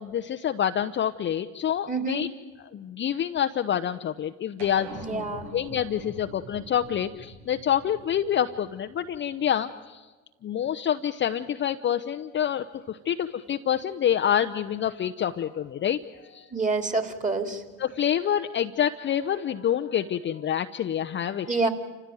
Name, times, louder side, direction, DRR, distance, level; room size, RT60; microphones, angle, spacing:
voice 1, 0.0-2.3 2.6-5.3 5.5-10.1 10.4-16.5 17.8-21.7, left 9 dB, 30° left, 8 dB, 0.7 m, -27 dB
voice 2, 1.9-2.2 4.9-5.5 16.5-17.6 21.5-21.7, right 3 dB, 20° right, 8 dB, 2.9 m, -27 dB
sound 1, 4.6-9.3, right 1 dB, 70° right, 6.5 m, -44 dB
29.0 x 15.5 x 9.2 m, 1.3 s
hypercardioid pair, 85°, 40 cm